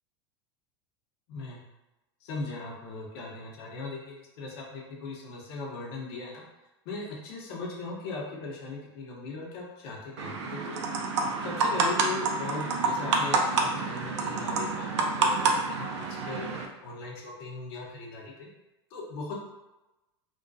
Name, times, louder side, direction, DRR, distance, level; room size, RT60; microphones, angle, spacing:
voice 1, 1.3-1.6 2.2-6.4 6.9-10.8 11.4-16.5 16.8-18.5 18.9-19.3, left 3 dB, 65° left, -2 dB, 0.7 m, -38 dB
sound 1, 10.2-16.7, right 3 dB, 85° right, 0.4 m, -28 dB
2.6 x 2.2 x 2.3 m, 1.0 s
hypercardioid pair, 95°, 14 cm